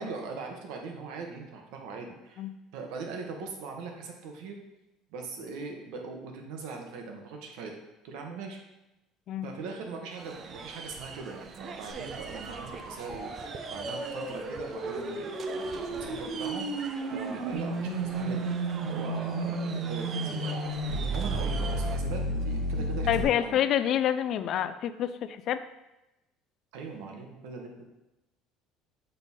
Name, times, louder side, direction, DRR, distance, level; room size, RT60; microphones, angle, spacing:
voice 1, 0.0-2.4 2.7-4.6 5.1-7.8 8.0-8.6 9.4-18.4 18.9-20.6 21.1-23.6 26.7-27.8, right 4 dB, 80° right, 2 dB, 1.1 m, -40 dB
sound 1, 10.2-22.0, right 5 dB, 40° right, 0.5 m, -41 dB
sound 2, 12.1-23.2, right 2 dB, 60° right, 1.5 m, -33 dB
voice 2, 23.1-25.6, left 10 dB, 55° left, 12 dB, 0.4 m, -27 dB
6.6 x 4.0 x 3.6 m, 0.96 s
cardioid pair, 115°, 0 cm